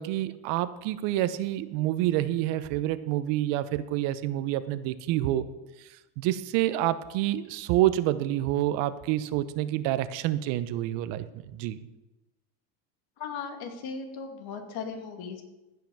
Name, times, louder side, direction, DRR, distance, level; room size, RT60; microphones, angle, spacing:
voice 1, 0.0-5.5 6.2-11.3 11.5-11.8, right 14 dB, 70° right, 13 dB, 0.9 m, -28 dB
voice 2, 13.2-15.4, left 5 dB, 55° left, 4 dB, 2.4 m, -37 dB
15.5 x 5.9 x 7.1 m, 1.0 s
cardioid pair, 130°, 44 cm